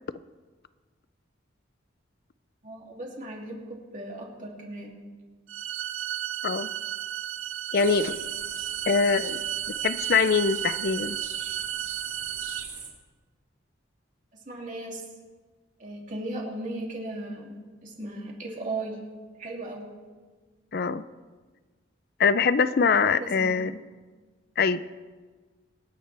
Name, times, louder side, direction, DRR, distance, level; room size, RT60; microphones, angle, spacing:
voice 1, 2.6-4.9 14.5-15.0 15.8-17.5 17.8-19.0 19.4-19.9 23.0-23.6, right 2 dB, 40° right, -2 dB, 2.8 m, -36 dB
sound 1, 5.5-12.6, right 11 dB, 90° right, 0.7 m, -33 dB
voice 2, 7.7-8.2 8.9-9.4 9.8-11.2 20.7-21.0 22.2-23.7 24.6-24.8, left 5 dB, 50° left, 14 dB, 0.5 m, -23 dB
sound 2, 7.7-12.9, right 5 dB, 25° right, 4.2 m, -40 dB
26.5 x 9.6 x 3.4 m, 1.4 s
head